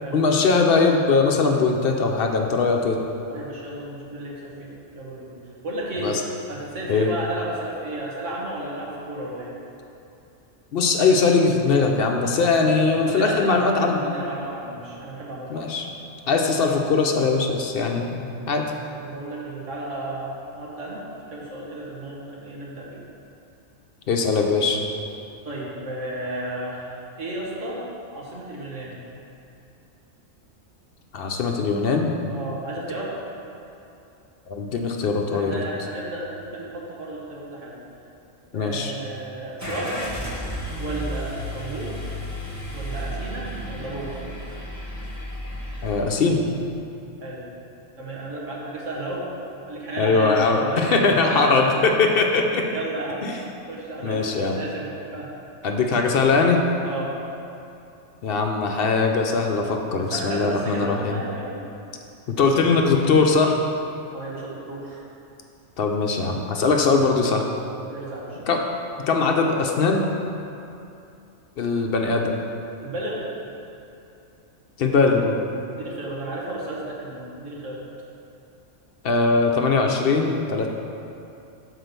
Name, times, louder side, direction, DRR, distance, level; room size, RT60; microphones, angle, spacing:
voice 1, 0.1-3.0 6.0-6.2 6.9-7.1 10.7-14.0 15.5-15.9 16.3-18.6 24.1-24.8 31.1-32.1 34.5-35.6 38.5-38.9 45.8-46.4 50.0-52.7 53.2-53.4 54.0-54.6 55.6-56.6 58.2-61.2 62.3-63.6 65.8-67.4 68.5-68.6 69.1-70.1 71.6-72.4 74.8-75.4 79.0-80.7, left 4 dB, 60° left, 2 dB, 0.7 m, -21 dB
voice 2, 3.3-5.3 5.6-6.1 6.5-9.5 13.1-13.7 14.0-15.6 19.0-21.0 21.3-23.0 25.4-27.8 28.1-29.0 32.3-33.1 35.3-37.7 38.5-40.0 40.8-42.0 42.7-44.2 47.2-47.4 48.0-49.2 49.7-52.0 52.7-53.2 53.7-55.3 56.8-57.1 60.0-61.6 64.1-65.0 67.9-68.5 72.8-73.2 75.7-77.8, right 1 dB, 80° right, -4 dB, 1.7 m, -33 dB
Car / Engine starting, 39.6-46.0, equal, 15° right, 1.0 m, -33 dB
6.1 x 4.5 x 6.6 m, 2.7 s
omnidirectional pair, 1.2 m